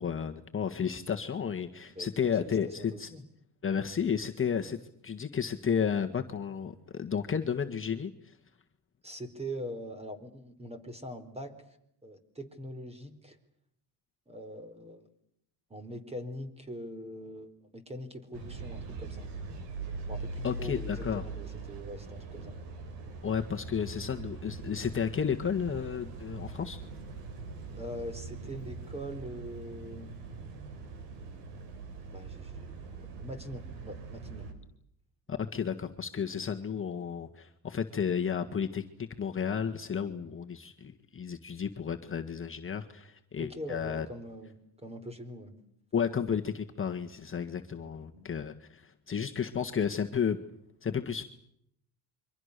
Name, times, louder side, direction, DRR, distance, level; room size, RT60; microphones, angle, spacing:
voice 1, 0.0-3.1 3.6-4.8 5.0-8.4 20.4-21.2 23.2-26.8 35.3-44.1 45.9-50.4 50.8-51.2, left 7 dB, 30° left, 4 dB, 1.7 m, -32 dB
voice 2, 1.9-3.3 9.0-11.5 12.0-13.4 14.3-15.1 15.7-19.3 20.1-22.6 27.7-30.1 32.1-34.5 43.4-44.5 44.8-45.6 48.1-48.3, equal, 15° right, 10 dB, 4.4 m, -43 dB
sound 1, 18.3-34.5, right 3 dB, 90° right, 5.0 m, -42 dB
27.5 x 24.5 x 6.8 m, 0.73 s
cardioid pair, 105°, 42 cm